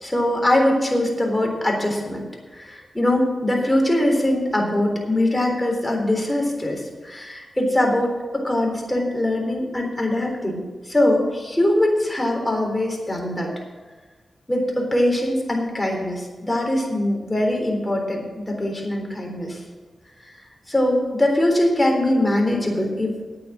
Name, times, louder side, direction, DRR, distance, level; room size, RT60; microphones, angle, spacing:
voice 1, 0.0-2.2 2.5-13.5 14.5-19.6 20.7-23.1, left 1 dB, 15° left, 1 dB, 3.6 m, -22 dB
9.2 x 8.9 x 8.5 m, 1.3 s
cardioid pair, 65°, 0 cm